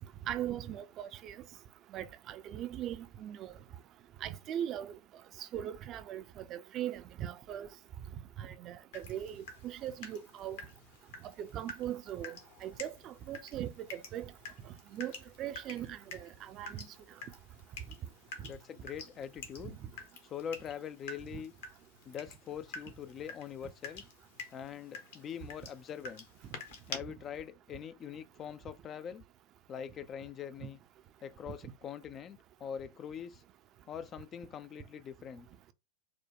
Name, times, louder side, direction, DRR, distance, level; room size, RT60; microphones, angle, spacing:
voice 1, 0.3-1.4 1.9-3.6 4.2-5.0 5.4-7.7 8.4-10.6 11.4-12.4 12.6-14.3 14.9-15.1 15.4-16.9 19.6-19.7, right 11 dB, 35° right, 0.5 m, -39 dB
Water tap faucet / Drip, 8.9-27.0, left 4 dB, 55° left, 1.0 m, -49 dB
voice 2, 18.4-19.8 20.3-21.5 22.1-24.0 24.5-26.3 26.9-29.2 29.7-30.8 31.2-33.4 33.9-35.5, left 8 dB, 25° left, 0.3 m, -43 dB
4.8 x 2.1 x 3.6 m
figure-of-eight pair, 90°, 0 cm